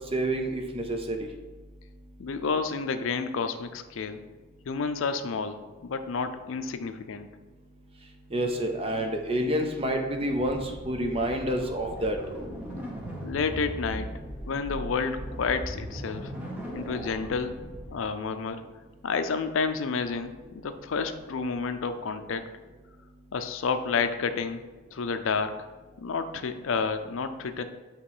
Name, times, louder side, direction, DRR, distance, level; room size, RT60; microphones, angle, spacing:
voice 1, 0.1-1.3 8.3-12.2, right 1 dB, 25° right, 3 dB, 0.6 m, -28 dB
voice 2, 2.2-4.2 4.6-7.3 13.2-14.1 14.5-16.3 16.7-17.6 17.9-18.6 19.0-22.4 23.3-24.6 24.9-25.6 26.0-27.6, left 5 dB, 75° left, 9 dB, 0.4 m, -30 dB
sound 1, 10.3-17.9, equal, 5° right, 1.0 m, -38 dB
8.2 x 3.0 x 4.8 m, 1.3 s
head